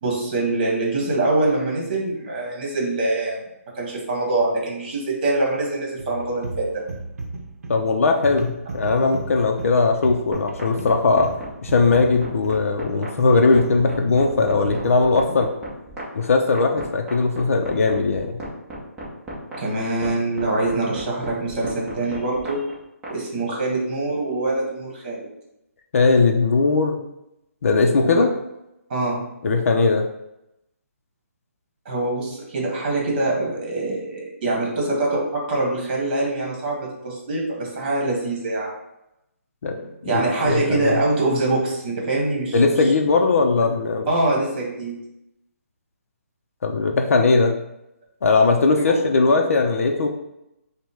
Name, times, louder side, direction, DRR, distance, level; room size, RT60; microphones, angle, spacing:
voice 1, 0.0-3.4 3.7-6.8 19.5-22.7 23.1-25.3 28.0-28.2 28.9-29.2 31.8-38.7 39.7-42.9 44.1-44.9 48.8-48.9, right 2 dB, 35° right, -2 dB, 1.3 m, -24 dB
sound 1, 6.0-15.6, right 3 dB, 80° right, 0.7 m, -35 dB
voice 2, 7.7-11.3 11.6-15.5 16.1-18.4 25.9-27.0 27.6-28.3 29.4-30.1 39.6-39.8 40.0-41.0 42.5-44.1 46.6-47.6 48.2-50.1, left 3 dB, 65° left, 3 dB, 0.5 m, -19 dB
sound 2, 10.3-23.1, right 2 dB, 10° right, 0.8 m, -35 dB
5.0 x 2.2 x 3.4 m, 0.86 s
hypercardioid pair, 165°, 8 cm